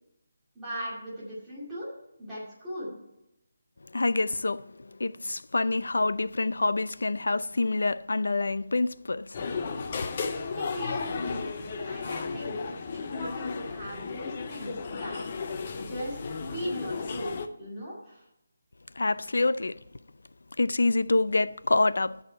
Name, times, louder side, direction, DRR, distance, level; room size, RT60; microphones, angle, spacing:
voice 1, 0.5-1.9 2.2-3.0 10.5-11.5 11.8-15.2 15.8-18.2, equal, 5° right, 2.2 m, -38 dB
voice 2, 3.9-9.4 19.0-19.8 20.6-22.2, left 2 dB, 80° left, 0.5 m, -26 dB
sound 1, 9.3-17.5, left 4 dB, 25° left, 0.5 m, -34 dB
14.5 x 4.8 x 4.5 m
hypercardioid pair, 180°, 0 cm